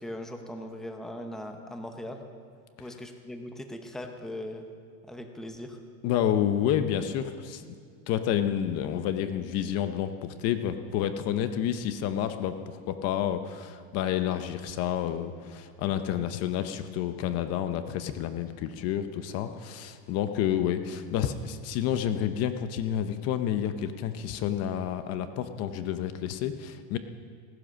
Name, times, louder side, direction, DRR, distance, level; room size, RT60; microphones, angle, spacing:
voice 1, 0.0-2.2 2.8-4.6 5.0-5.8, left 1 dB, ahead, 5 dB, 0.8 m, -39 dB
voice 2, 6.0-7.6 8.1-27.0, left 10 dB, 40° left, 10 dB, 0.8 m, -29 dB
17.0 x 10.5 x 6.4 m, 2.2 s
supercardioid pair, 145°, 37 cm